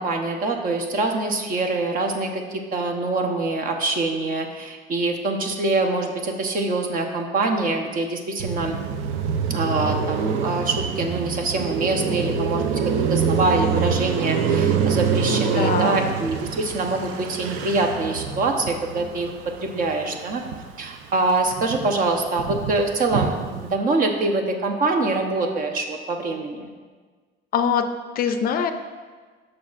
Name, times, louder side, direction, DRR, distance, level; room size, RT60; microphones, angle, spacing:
voice 1, 0.0-8.8 9.5-12.6 13.1-19.3 19.6-20.4 20.8-26.7, right 3 dB, 45° right, 4 dB, 0.8 m, -24 dB
Car passing by, 8.4-20.9 21.2-23.7, right 6 dB, 90° right, 0.5 m, -26 dB
voice 2, 15.3-16.2 27.5-27.8 28.2-28.7, left 7 dB, 50° left, 8 dB, 0.4 m, -23 dB
10.5 x 6.3 x 2.5 m, 1.4 s
cardioid pair, 155°, 20 cm